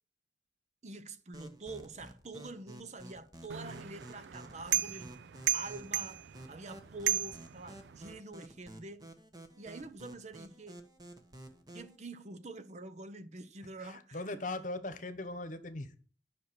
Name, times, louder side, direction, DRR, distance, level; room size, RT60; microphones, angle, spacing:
voice 1, 0.8-5.1 5.5-9.1 9.6-10.8 11.7-14.2, right 2 dB, 40° right, 0.7 m, -46 dB
sound 1, 1.3-12.0, right 1 dB, 20° right, 1.2 m, -52 dB
sound 2, 3.5-8.2, right 12 dB, 70° right, 0.4 m, -36 dB
voice 2, 13.6-16.0, left 2 dB, 45° left, 1.1 m, -40 dB
10.5 x 6.0 x 6.0 m
head